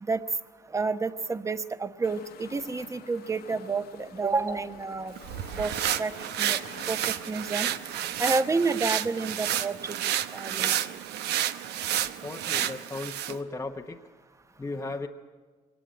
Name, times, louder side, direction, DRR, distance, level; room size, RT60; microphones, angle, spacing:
voice 1, 0.7-5.2 5.6-5.7 6.0-6.6 6.9-7.7 8.2-10.7, right 4 dB, 15° right, 11 dB, 1.0 m, -30 dB
sound 1, 2.0-9.0, left 9 dB, 65° left, 1.3 m, -49 dB
sound 2, 5.2-13.4, right 11 dB, 80° right, 0.9 m, -30 dB
voice 2, 12.2-14.0 14.6-15.1, left 3 dB, 15° left, 1 dB, 0.9 m, -36 dB
23.0 x 19.0 x 9.0 m, 1.4 s
cardioid pair, 110°, 17 cm